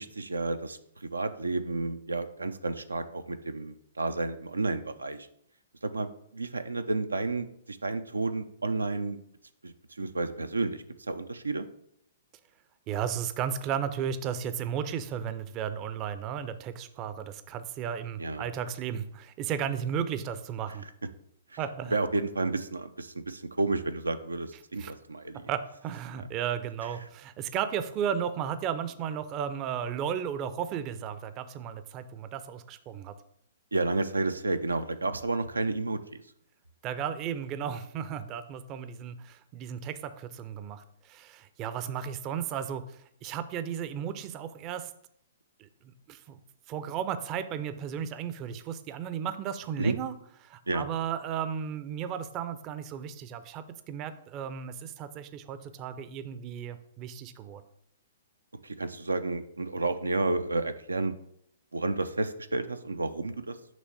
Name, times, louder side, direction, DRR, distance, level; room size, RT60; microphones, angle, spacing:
voice 1, 0.0-5.3 5.8-9.2 9.6-11.7 18.2-18.4 21.9-25.5 33.7-36.2 49.8-50.0 50.7-50.8 58.6-61.1 61.7-63.6, right 3 dB, 85° right, 9 dB, 0.4 m, -31 dB
voice 2, 12.9-20.9 21.6-22.0 24.8-24.9 25.5-33.1 36.8-44.9 45.6-45.7 46.1-46.4 46.7-50.1 50.4-57.6, right 8 dB, 30° right, 12 dB, 0.5 m, -34 dB
6.1 x 3.1 x 5.6 m, 0.71 s
figure-of-eight pair, 120°, 0 cm